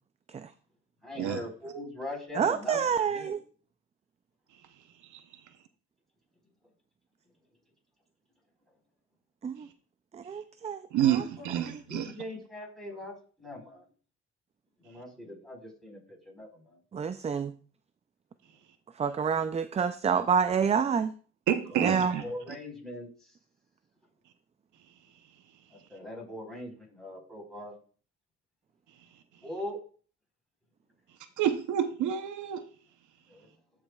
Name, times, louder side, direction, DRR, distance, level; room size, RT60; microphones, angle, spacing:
voice 1, 1.0-2.8 3.1-3.3 11.1-13.9 14.8-16.8 21.7-22.0 22.2-23.3 25.7-27.7 29.4-29.8 33.3-33.5, left 1 dB, ahead, -2 dB, 4.2 m, -41 dB
voice 2, 2.3-3.4 9.4-9.7 10.1-11.2 16.9-17.5 19.0-21.1 21.8-22.2, right 6 dB, 25° right, 11 dB, 0.3 m, -28 dB
voice 3, 10.9-12.1 21.5-22.2 31.4-32.6, right 10 dB, 75° right, 8 dB, 0.8 m, -28 dB
13.5 x 5.0 x 2.3 m, 0.41 s
cardioid pair, 90°, 30 cm